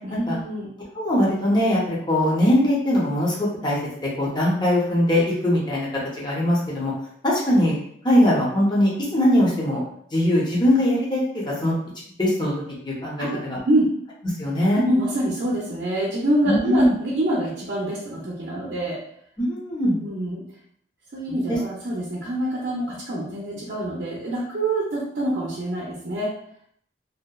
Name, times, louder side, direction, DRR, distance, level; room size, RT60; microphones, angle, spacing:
voice 1, 0.0-0.7 13.2-14.0 14.7-19.0 19.8-20.4 21.1-26.3, right 1 dB, 60° right, -5 dB, 0.5 m, -26 dB
voice 2, 0.9-5.9 6.1-6.9 7.2-7.8 8.0-9.8 10.1-11.7 12.2-13.6 14.4-14.8 16.5-16.9 19.4-20.0 21.5-21.6, left 1 dB, 25° left, -5 dB, 0.6 m, -21 dB
2.7 x 2.1 x 2.2 m, 0.67 s
head